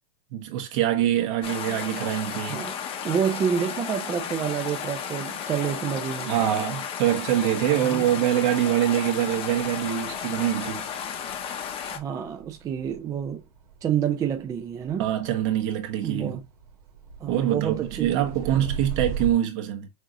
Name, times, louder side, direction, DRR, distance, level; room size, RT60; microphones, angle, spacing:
voice 1, 0.3-2.7 6.3-10.9 15.0-16.4 17.3-19.9, right 12 dB, 50° right, 1.3 m, -24 dB
sound 1, 1.4-12.0, left 7 dB, 30° left, 0.8 m, -33 dB
voice 2, 3.0-6.3 7.8-8.1 11.9-13.4 13.8-15.1 16.0-16.4 17.2-18.7, right 8 dB, 15° right, 0.4 m, -28 dB
sound 2, 10.1-19.3, right 5 dB, 80° right, 1.6 m, -39 dB
6.2 x 2.6 x 3.0 m
supercardioid pair, 140°, 20 cm